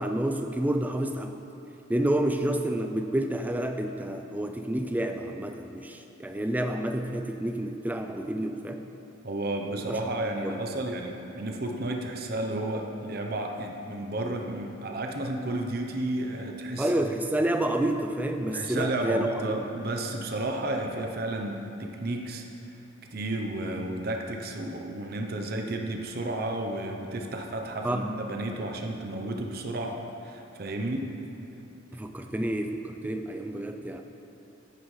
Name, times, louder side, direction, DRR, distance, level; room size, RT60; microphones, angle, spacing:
voice 1, 0.0-1.4 1.9-8.9 9.9-10.0 10.4-10.6 16.8-19.4 27.8-28.1 31.9-34.0, right 1 dB, 10° right, 6 dB, 0.3 m, -29 dB
voice 2, 9.2-17.2 18.5-22.4 23.1-31.0, right 1 dB, 45° right, 2 dB, 0.7 m, -32 dB
10.0 x 9.3 x 3.2 m, 2.8 s
head